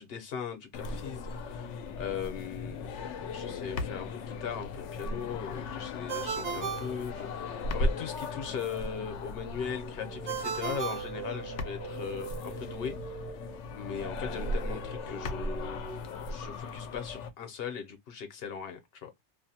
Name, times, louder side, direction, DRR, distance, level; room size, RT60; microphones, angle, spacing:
voice 1, 0.0-2.9 3.2-13.0 13.7-15.8 16.3-19.1, left 7 dB, 60° left, 1.0 m, -39 dB
sound 1, 0.7-17.3, left 2 dB, 85° left, 0.9 m, -37 dB
Ringtone, 6.1-7.8 10.3-11.9, right 7 dB, 85° right, 1.0 m, -36 dB
sound 2, 9.8-16.0, right 6 dB, 60° right, 0.7 m, -44 dB
2.6 x 2.2 x 2.7 m
omnidirectional pair, 1.2 m